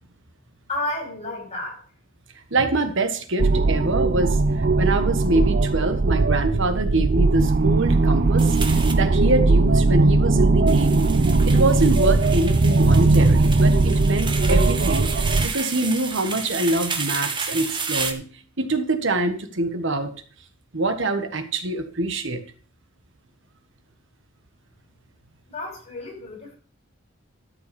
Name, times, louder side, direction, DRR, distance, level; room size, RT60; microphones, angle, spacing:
voice 1, 0.7-1.8 25.5-26.6, left 2 dB, 30° left, -1 dB, 6.3 m, -31 dB
voice 2, 2.5-8.5 8.9-11.1 11.4-18.2 18.6-20.1 20.7-22.4, right 2 dB, 60° right, 7 dB, 1.5 m, -25 dB
sound 1, 3.4-15.5, right 3 dB, 45° right, 0.6 m, -19 dB
sound 2, 8.4-8.9 10.7-18.1, right 5 dB, 20° right, 1.4 m, -31 dB
13.0 x 5.8 x 7.0 m, 0.43 s
head